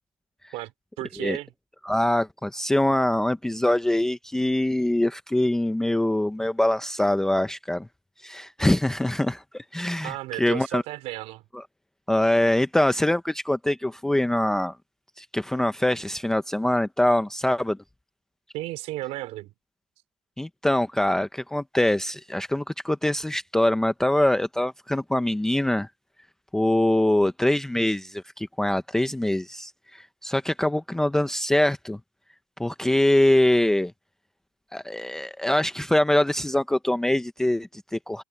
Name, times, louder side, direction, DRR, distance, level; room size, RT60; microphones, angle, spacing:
voice 1, 0.5-1.5 10.0-11.4 18.5-19.5, right 17 dB, 55° right, 3.4 m, -34 dB
voice 2, 1.8-7.9 8.2-10.8 12.1-14.8 15.2-17.8 20.4-25.9 26.5-32.0 32.6-33.9 34.7-38.2, left 1 dB, 5° left, 0.6 m, -24 dB
cardioid pair, 165°, 13 cm